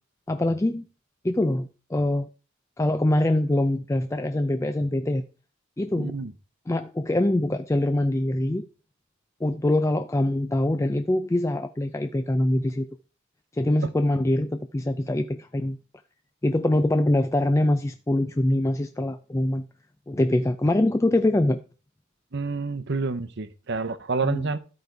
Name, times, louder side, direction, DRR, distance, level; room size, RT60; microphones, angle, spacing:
voice 1, 0.3-0.9 1.2-2.3 2.8-5.3 5.8-6.1 6.7-8.7 9.4-12.9 13.5-15.8 16.4-19.7 20.1-21.6 24.2-24.5, left 1 dB, 15° left, 0.3 m, -24 dB
voice 2, 6.0-6.3 22.3-24.6, right 4 dB, 55° right, 0.8 m, -28 dB
12.5 x 5.2 x 4.6 m
head